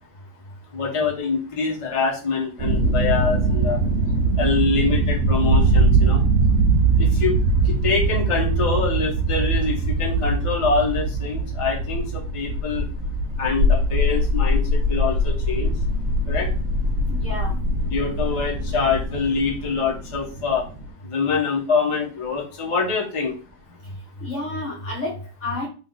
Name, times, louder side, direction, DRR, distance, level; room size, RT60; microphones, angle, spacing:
voice 1, 0.7-3.8 4.4-6.2 7.0-7.3 7.6-12.8 13.4-15.7 16.3-16.5 17.8-20.6 21.0-23.3, left 4 dB, 30° left, -2 dB, 0.6 m, -25 dB
sound 1, 2.6-20.9, right 2 dB, 35° right, 1.5 m, -22 dB
voice 2, 17.1-17.6 23.8-23.9 24.2-25.7, left 2 dB, 55° left, -1 dB, 1.0 m, -30 dB
3.7 x 2.6 x 3.8 m, 0.36 s
omnidirectional pair, 2.0 m